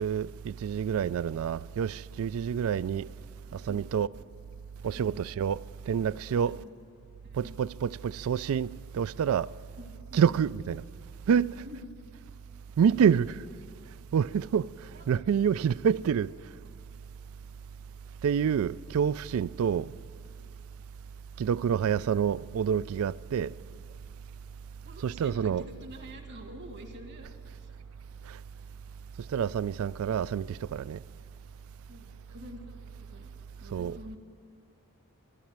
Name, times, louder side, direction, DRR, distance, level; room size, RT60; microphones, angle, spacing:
voice 1, 0.0-3.1 3.5-4.1 4.8-5.6 5.9-6.6 7.3-9.5 10.1-10.8 11.3-11.6 12.8-13.4 14.1-16.3 18.2-19.9 21.4-23.5 25.0-25.7 28.3-28.4 29.3-31.0 33.7-34.0, right 7 dB, 70° right, 0.3 m, -27 dB
voice 2, 3.5-3.9 5.0-5.3 6.4-6.7 7.2-7.6 9.8-10.4 11.3-11.9 14.9-15.1 15.8-16.0 24.8-27.8 31.9-33.3 33.6-34.2, equal, 50° right, 1.8 m, -47 dB
14.5 x 11.5 x 8.8 m
head